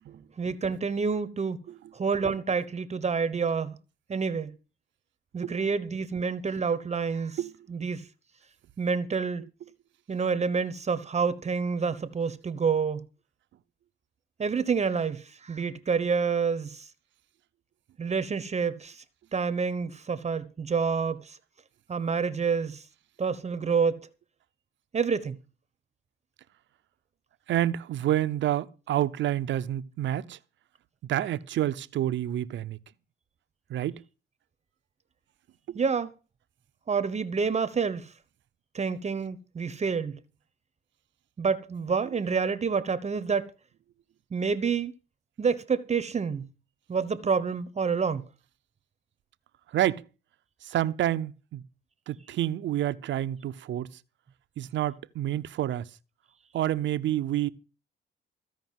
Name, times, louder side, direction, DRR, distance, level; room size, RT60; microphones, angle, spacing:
voice 1, 0.4-1.6 1.9-3.8 4.1-4.5 5.3-7.4 7.7-8.0 8.8-9.4 10.1-13.0 14.4-16.9 18.0-19.0 19.3-21.4 21.9-22.8 23.2-24.0 24.9-25.4 35.7-36.1 36.9-38.1 38.7-40.1 41.4-43.5 44.3-44.9 45.4-46.5 46.9-48.2, right 5 dB, 35° right, 1.0 m, -28 dB
voice 2, 27.5-30.4 31.1-32.8 33.7-34.0 35.7-35.8 49.7-50.0 50.6-51.6 52.1-53.9 54.6-55.9 56.5-57.5, right 12 dB, 70° right, 0.8 m, -28 dB
15.0 x 5.2 x 9.2 m
cardioid pair, 90°, 20 cm